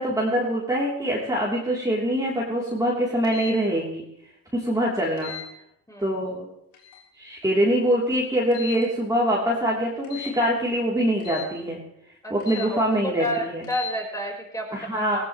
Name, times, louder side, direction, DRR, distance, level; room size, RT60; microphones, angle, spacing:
voice 1, 0.0-4.0 4.5-5.3 6.0-6.5 7.2-11.8 12.3-13.6 14.7-15.2, equal, 10° right, -5 dB, 3.3 m, -24 dB
sound 1, 3.2-3.6 5.2-5.5 6.7-7.0 8.5-8.9 10.0-10.4 11.2-11.5 12.4-12.7 13.6-13.9, left 10 dB, 85° left, 3.8 m, -37 dB
voice 2, 12.2-15.2, equal, 10° left, 0 dB, 4.5 m, -31 dB
19.0 x 16.0 x 3.2 m, 0.77 s
supercardioid pair, 85°, 42 cm